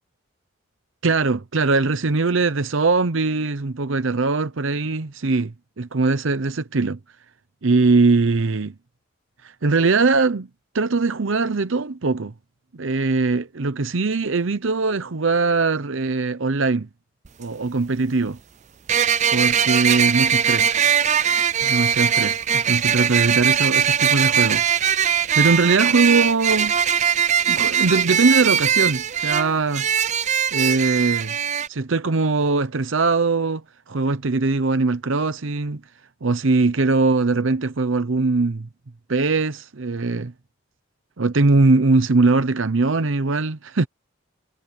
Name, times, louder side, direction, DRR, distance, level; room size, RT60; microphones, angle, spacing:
voice 1, 1.0-7.0 7.6-8.7 9.4-10.5 10.7-12.3 12.7-16.9 17.4-18.4 19.3-20.7 21.6-22.4 22.6-24.6 25.3-26.7 27.5-29.9 30.5-31.3 31.7-35.8 36.2-38.7 39.1-40.3 41.2-43.9, right 3 dB, 70° right, 0.8 m, -21 dB
sound 1, 17.3-17.4 18.9-31.7, right 8 dB, 35° right, 0.4 m, -20 dB
head